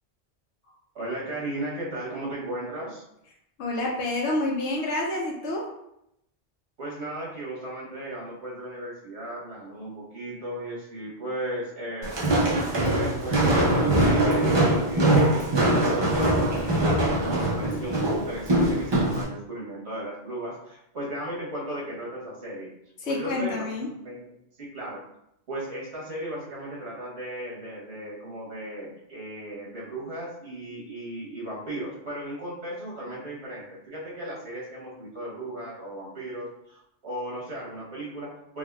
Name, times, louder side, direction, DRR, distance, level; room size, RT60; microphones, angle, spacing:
voice 1, 0.6-3.0 6.8-12.2 12.7-22.7 23.0-24.2 24.6-25.0 25.5-38.6, right 1 dB, 80° right, -5 dB, 1.3 m, -36 dB
voice 2, 3.6-5.6 23.0-23.9, left 2 dB, 85° left, -1 dB, 0.9 m, -28 dB
Walk footsteps, 12.0-19.2, right 1 dB, 35° right, 0.5 m, -22 dB
3.5 x 2.2 x 2.3 m, 0.78 s
omnidirectional pair, 1.1 m